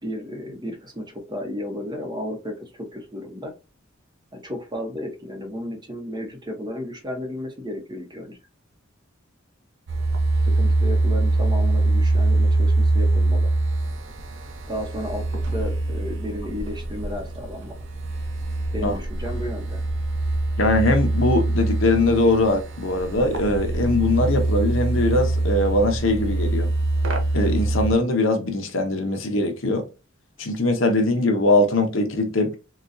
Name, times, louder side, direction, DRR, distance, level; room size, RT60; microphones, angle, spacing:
voice 1, 0.0-3.5 4.3-8.4 10.4-13.5 14.7-17.8 18.7-19.8, equal, 20° right, 0.9 m, -33 dB
sound 1, 9.9-27.9, right 2 dB, 65° right, 0.7 m, -23 dB
voice 2, 20.6-26.7 27.3-29.9 30.4-32.6, left 2 dB, 70° left, 0.8 m, -21 dB
4.0 x 2.3 x 2.5 m
head